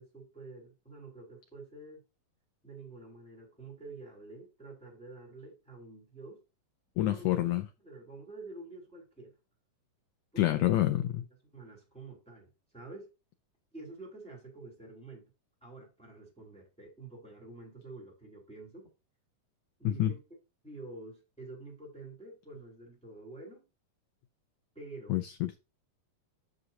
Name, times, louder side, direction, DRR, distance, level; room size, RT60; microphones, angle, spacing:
voice 1, 0.0-2.0 2.6-6.4 7.1-7.4 7.8-9.3 10.3-10.8 11.5-13.1 13.7-15.3 15.6-18.9 19.8-20.2 20.6-23.6 24.7-25.2, right 2 dB, ahead, 3.0 m, -48 dB
voice 2, 7.0-7.6 10.4-11.2 19.8-20.1 25.1-25.6, left 14 dB, 90° left, 1.6 m, -27 dB
9.6 x 6.3 x 2.8 m
omnidirectional pair, 3.9 m